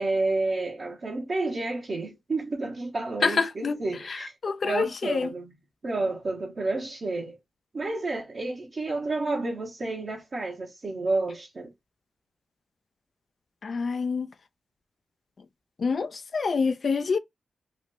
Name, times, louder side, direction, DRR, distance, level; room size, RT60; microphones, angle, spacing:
voice 1, 0.0-4.3 4.6-5.6 5.8-7.4 7.7-11.7, right 2 dB, 55° right, 0.9 m, -30 dB
voice 2, 3.2-3.8 4.4-5.3 13.6-14.3 15.8-17.2, left 5 dB, 60° left, 0.5 m, -26 dB
3.0 x 2.5 x 2.9 m
supercardioid pair, 40°, 0 cm